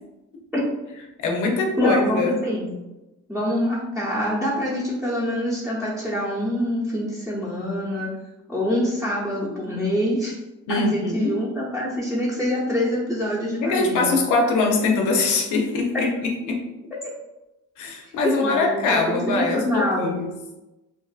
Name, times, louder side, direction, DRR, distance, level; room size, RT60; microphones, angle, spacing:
voice 1, 1.2-2.4 10.7-11.4 13.6-16.6 17.8-20.3, left 3 dB, 80° left, 1 dB, 0.6 m, -23 dB
voice 2, 1.8-2.7 3.3-8.1 8.5-10.4 10.7-14.0 15.9-16.1 18.4-20.1, equal, ahead, -11 dB, 0.8 m, -25 dB
2.6 x 2.5 x 2.3 m, 1.0 s
cardioid pair, 90°, 30 cm